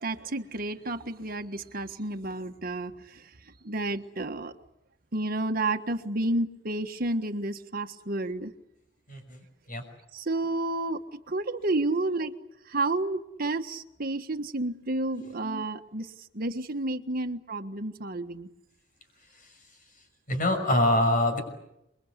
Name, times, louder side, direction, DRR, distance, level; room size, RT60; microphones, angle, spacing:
voice 1, 0.0-2.9 3.6-4.5 5.1-8.5 10.1-11.0 11.3-12.3 12.7-16.1 16.3-18.5, right 2 dB, 50° right, 7 dB, 1.6 m, -30 dB
voice 2, 9.1-9.8 12.2-12.3 15.1-15.4 17.1-17.2 19.3-19.5 20.3-21.4, left 1 dB, 45° left, 6 dB, 6.0 m, -26 dB
29.0 x 22.5 x 8.2 m, 0.85 s
head